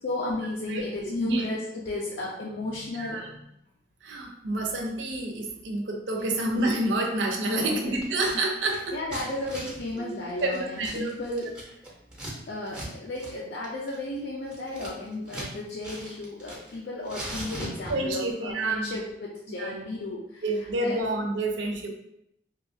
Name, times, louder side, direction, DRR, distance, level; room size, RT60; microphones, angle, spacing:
voice 1, 0.0-3.4 7.5-7.8 8.9-11.5 12.5-20.4 20.8-21.0, left 2 dB, 70° left, -4 dB, 0.4 m, -34 dB
voice 2, 3.0-3.3 4.0-9.0 9.3-9.4 10.0-10.1 10.4-11.5 17.9-18.9 19.6-19.8 20.4-21.9, right 2 dB, 85° right, 2 dB, 0.5 m, -28 dB
Scissors, 8.0-8.4 8.6-12.3 12.7-12.9 13.2-13.3 13.6-15.5 15.8-16.8 17.0-18.2, right 1 dB, 5° right, 0.5 m, -39 dB
2.9 x 2.3 x 2.6 m, 0.78 s
head